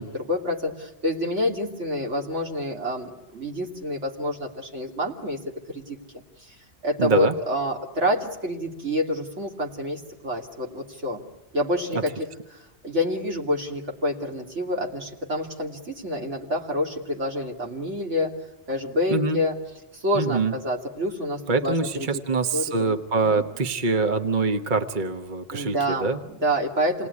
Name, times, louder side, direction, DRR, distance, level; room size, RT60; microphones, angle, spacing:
voice 1, 0.0-5.4 5.7-6.5 6.8-11.2 11.5-18.3 18.7-19.6 19.9-22.2 22.5-23.4 25.5-27.1, left 1 dB, 85° right, 0 dB, 3.1 m, -28 dB
voice 2, 7.0-7.4 11.9-12.0 19.1-19.4 20.1-20.5 21.5-26.2, right 4 dB, 45° right, 5 dB, 1.2 m, -24 dB
28.0 x 19.5 x 9.7 m, 0.95 s
omnidirectional pair, 1.2 m